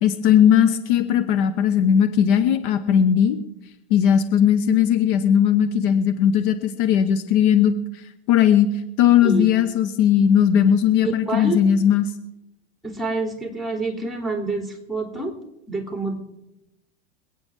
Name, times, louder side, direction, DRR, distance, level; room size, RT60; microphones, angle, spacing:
voice 1, 0.0-3.4 3.9-7.7 8.3-8.7 9.0-12.1, left 9 dB, 55° left, 9 dB, 1.2 m, -18 dB
voice 2, 11.2-11.6 12.8-15.3 15.7-16.2, right 3 dB, ahead, 3 dB, 3.2 m, -27 dB
26.5 x 8.9 x 3.8 m, 0.92 s
hypercardioid pair, 90°, 32 cm